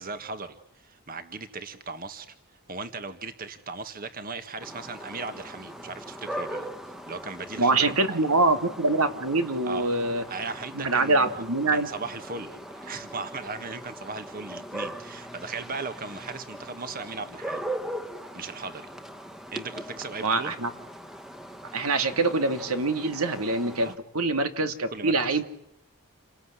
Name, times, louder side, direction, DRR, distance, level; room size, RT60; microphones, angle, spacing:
voice 1, 0.0-2.3 2.7-6.7 7.1-8.2 9.6-9.9 10.3-11.4 11.7-17.6 18.3-18.9 19.5-20.5 23.8-24.0 24.9-25.4, right 4 dB, 40° right, 10 dB, 1.7 m, -37 dB
sound 1, 4.6-24.0, right 1 dB, ahead, 1.3 m, -40 dB
voice 2, 7.6-10.2 10.7-11.9 20.2-20.7 21.7-25.4, right 3 dB, 85° right, 9 dB, 2.6 m, -24 dB
29.5 x 20.0 x 9.9 m, 0.78 s
head